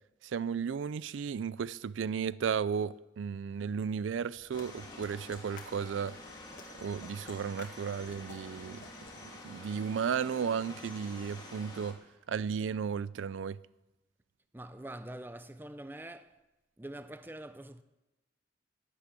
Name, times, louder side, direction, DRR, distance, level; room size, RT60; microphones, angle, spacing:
voice 1, 0.2-6.2 6.8-8.9 9.4-12.0 12.3-13.6, right 7 dB, 85° right, 0.4 m, -34 dB
sound 1, 4.4-9.1, left 3 dB, 45° left, 2.0 m, -53 dB
sound 2, 4.5-11.9, left 2 dB, 20° left, 2.2 m, -48 dB
voice 2, 14.5-16.4 16.8-17.8, right 1 dB, 10° right, 0.5 m, -45 dB
11.5 x 11.0 x 8.4 m
head